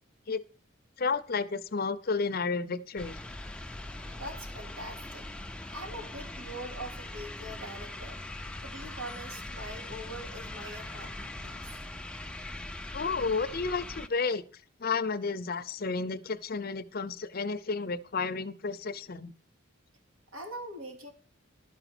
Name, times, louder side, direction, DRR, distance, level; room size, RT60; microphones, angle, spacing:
voice 1, 1.0-3.2 12.9-14.4 14.8-19.3, left 4 dB, 45° left, 0.6 m, -31 dB
sound 1, 3.0-14.1, left 1 dB, 5° left, 0.5 m, -41 dB
voice 2, 4.1-5.3 5.7-8.2 8.6-11.7 20.3-21.1, right 1 dB, 85° right, 3.2 m, -43 dB
12.0 x 5.0 x 6.1 m
head